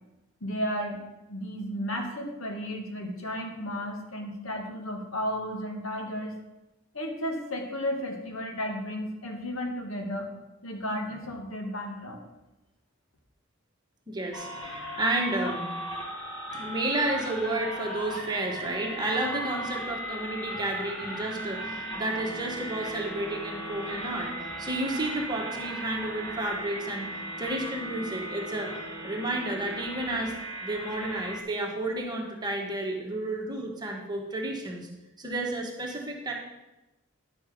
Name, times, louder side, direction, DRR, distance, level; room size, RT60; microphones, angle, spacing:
voice 1, 0.4-1.0 1.3-6.3 6.9-10.3 10.6-12.3, equal, 75° left, 2 dB, 2.0 m, -33 dB
voice 2, 14.1-15.7 16.5-24.3 24.6-27.1 27.4-28.7 29.0-30.4 30.6-34.9 35.2-36.3, right 2 dB, 20° right, 0 dB, 1.5 m, -31 dB
sound 1, 14.3-31.4, right 1 dB, 25° left, 1.7 m, -37 dB
10.5 x 6.9 x 5.1 m, 0.99 s
head